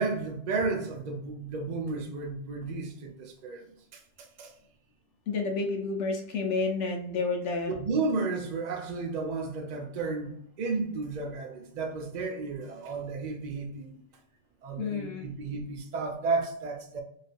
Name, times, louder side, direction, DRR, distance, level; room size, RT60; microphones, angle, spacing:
voice 1, 0.0-4.0 4.4-4.5 7.7-14.0 14.6-17.0, right 3 dB, 50° right, 0.5 m, -33 dB
voice 2, 5.3-7.7 14.8-15.3, left 4 dB, 80° left, 0.9 m, -30 dB
3.3 x 2.3 x 2.5 m
omnidirectional pair, 1.3 m